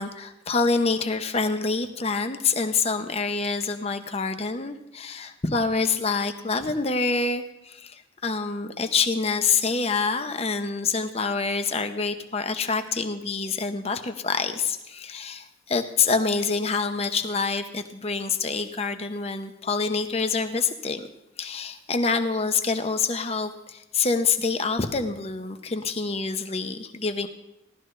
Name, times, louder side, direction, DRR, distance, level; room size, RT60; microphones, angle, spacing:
voice 1, 0.0-21.1 21.4-27.3, left 4 dB, 35° left, 8 dB, 0.9 m, -26 dB
17.5 x 12.5 x 3.3 m, 0.87 s
head